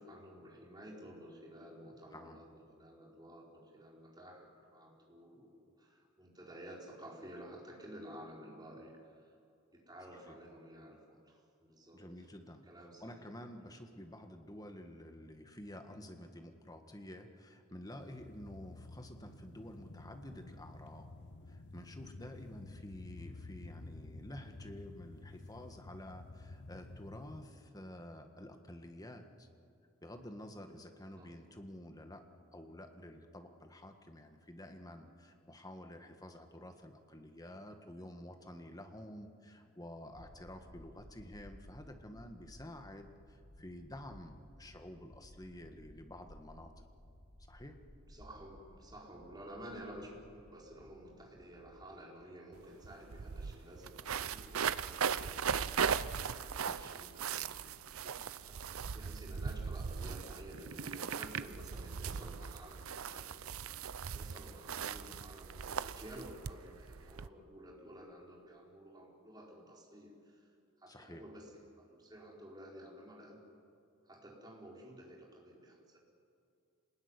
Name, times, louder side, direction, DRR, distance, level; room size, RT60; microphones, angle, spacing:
voice 1, 0.0-2.5 2.8-9.3 9.7-12.1 12.7-13.6 31.2-31.3 48.1-73.4 74.0-76.0, right 1 dB, 20° right, -2 dB, 4.7 m, -52 dB
voice 2, 11.9-12.6 13.0-21.1 21.5-29.5 30.0-32.2 32.5-46.8 47.5-47.8 56.7-56.9 70.9-71.2, left 1 dB, 20° left, 6 dB, 1.7 m, -50 dB
sound 1, 18.0-27.4, left 2 dB, 55° left, 1.1 m, -51 dB
sound 2, 40.1-51.9, equal, 85° left, 2.4 m, -58 dB
sound 3, 52.5-52.6 52.8-67.3, right 6 dB, 75° right, 0.6 m, -39 dB
27.5 x 20.0 x 9.8 m, 2.4 s
head